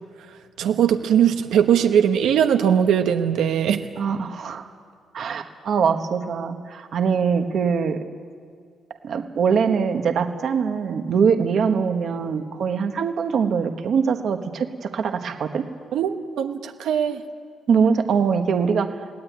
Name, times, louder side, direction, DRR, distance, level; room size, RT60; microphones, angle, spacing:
voice 1, 0.6-3.8 15.9-17.2, right 9 dB, 85° right, 6 dB, 1.2 m, -20 dB
voice 2, 4.0-4.7 5.1-8.0 9.0-15.6 17.7-18.9, right 6 dB, 45° right, 6 dB, 1.2 m, -22 dB
22.5 x 18.5 x 9.4 m, 2.1 s
cardioid pair, 180°, 0 cm